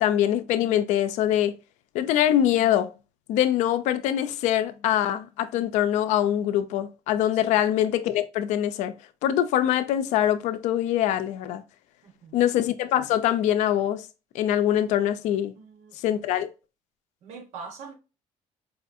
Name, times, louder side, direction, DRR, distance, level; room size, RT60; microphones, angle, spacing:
voice 1, 0.0-1.5 1.9-2.9 3.3-8.9 9.2-11.6 12.3-14.1 14.3-15.5 16.0-16.5, left 11 dB, 80° left, 0.5 m, -23 dB
voice 2, 7.3-7.6 12.0-12.4 15.5-16.0 17.2-17.9, right 5 dB, 65° right, 1.1 m, -43 dB
4.8 x 2.5 x 2.6 m
cardioid pair, 145°, 12 cm